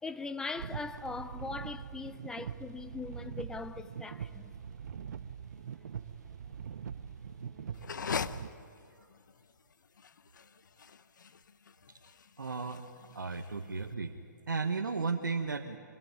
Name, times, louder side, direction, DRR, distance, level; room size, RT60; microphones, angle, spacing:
voice 1, 0.0-4.5, left 4 dB, 5° left, 0.5 m, -40 dB
sound 1, 0.6-8.5, right 7 dB, 60° right, 0.9 m, -43 dB
sound 2, 7.7-13.9, left 6 dB, 70° left, 0.8 m, -41 dB
voice 2, 12.4-12.9 13.1-14.2 14.5-15.8, right 4 dB, 85° right, 1.3 m, -34 dB
25.0 x 18.5 x 9.5 m
hypercardioid pair, 140°, 10 cm